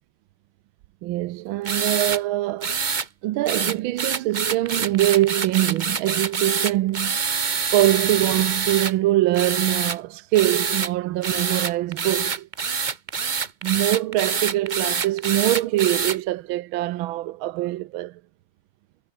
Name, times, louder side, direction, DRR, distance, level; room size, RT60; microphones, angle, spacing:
voice 1, 1.0-2.8 3.2-7.2 7.7-12.5 13.6-18.2, right 16 dB, 80° right, 1.4 m, -23 dB
sound 1, 1.6-2.2 2.6-3.1 3.5-8.9 9.3-10.0 10.3-10.9 11.2-16.2, right 5 dB, 40° right, 0.6 m, -26 dB
omnidirectional pair, 2.3 m